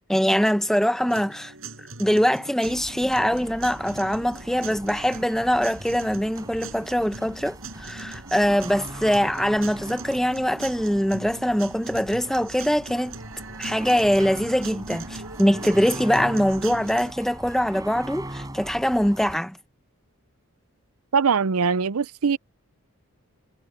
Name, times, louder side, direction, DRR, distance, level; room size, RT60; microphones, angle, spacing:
voice 1, 0.1-1.5 2.0-13.1 13.6-19.6, equal, ahead, 1.0 m, -23 dB
sound 1, 1.1-17.1, right 3 dB, 65° right, 7.1 m, -40 dB
sound 2, 2.6-19.4, right 1 dB, 15° right, 4.5 m, -41 dB
voice 2, 21.1-22.4, right 5 dB, 80° right, 0.6 m, -22 dB
head